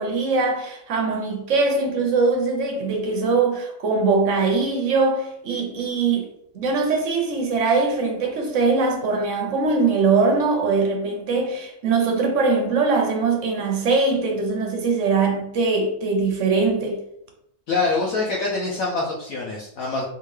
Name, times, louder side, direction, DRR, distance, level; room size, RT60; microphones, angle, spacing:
voice 1, 0.0-6.3 6.5-17.0, right 4 dB, 65° right, 0.8 m, -21 dB
voice 2, 17.7-20.0, left 3 dB, 65° left, 1.0 m, -25 dB
3.6 x 2.6 x 3.1 m
omnidirectional pair, 1.7 m